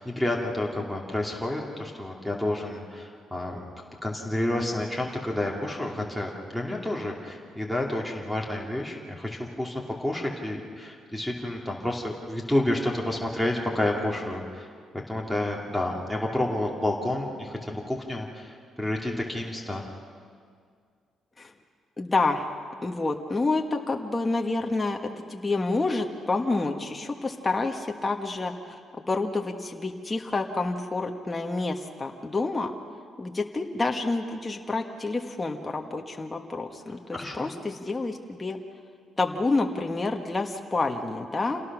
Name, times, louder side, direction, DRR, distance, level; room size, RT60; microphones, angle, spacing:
voice 1, 0.0-3.6 4.0-9.7 10.0-14.7 15.1-19.8 37.1-37.5, left 1 dB, ahead, 0 dB, 2.7 m, -30 dB
voice 2, 22.0-22.5 22.8-25.0 25.3-28.8 29.1-32.7 33.2-38.6 39.2-41.6, left 3 dB, 20° left, 2 dB, 1.5 m, -28 dB
28.0 x 18.5 x 6.2 m, 2.1 s
cardioid pair, 90°, 0 cm